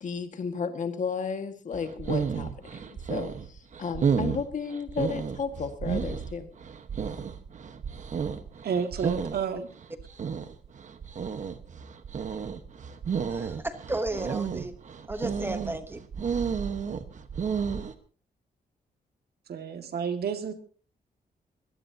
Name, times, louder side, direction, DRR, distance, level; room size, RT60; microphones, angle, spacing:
voice 1, 0.0-6.5, left 5 dB, 50° left, 7 dB, 1.7 m, -33 dB
sound 1, 1.7-17.9, right 6 dB, 50° right, 1.2 m, -32 dB
voice 2, 8.6-9.7 19.5-20.5, right 6 dB, 75° right, 7 dB, 2.0 m, -30 dB
voice 3, 13.3-14.8 15.1-16.0, right 2 dB, 15° right, 9 dB, 1.0 m, -33 dB
23.0 x 17.5 x 2.8 m, 0.39 s
wide cardioid pair, 170°, 16 cm